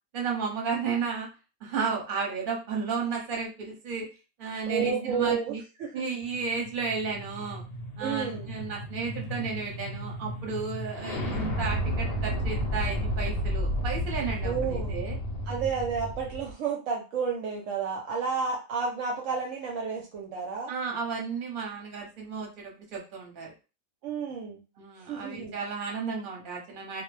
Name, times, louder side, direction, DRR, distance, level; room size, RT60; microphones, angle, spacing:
voice 1, 0.1-1.3 1.6-4.1 4.4-5.6 5.9-7.6 8.0-15.2 20.7-23.5 24.8-27.0, right 5 dB, 45° right, 0 dB, 0.8 m, -33 dB
voice 2, 4.7-5.9 8.0-8.5 14.4-15.0 15.5-20.7 24.0-24.6 25.1-25.5, right 5 dB, 70° right, 0 dB, 0.9 m, -31 dB
sound 1, 6.3-16.5, equal, 60° left, 0.7 m, -32 dB
2.3 x 2.0 x 3.1 m, 0.31 s
omnidirectional pair, 1.4 m